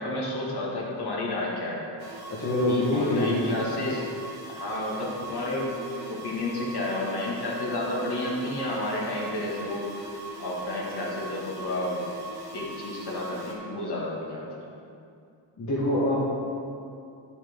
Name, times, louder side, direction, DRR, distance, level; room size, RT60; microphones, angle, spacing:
voice 1, 0.0-1.9 2.7-4.1 4.5-5.7 6.1-9.9 10.4-12.0 12.5-14.7, left 1 dB, 55° left, -4 dB, 1.9 m, -31 dB
sound 1, 2.0-13.5, right 2 dB, 55° right, 1.6 m, -41 dB
voice 2, 2.3-3.6 15.6-16.2, left 1 dB, 40° left, -7 dB, 1.3 m, -25 dB
10.0 x 7.2 x 3.6 m, 2.5 s
wide cardioid pair, 160°, 46 cm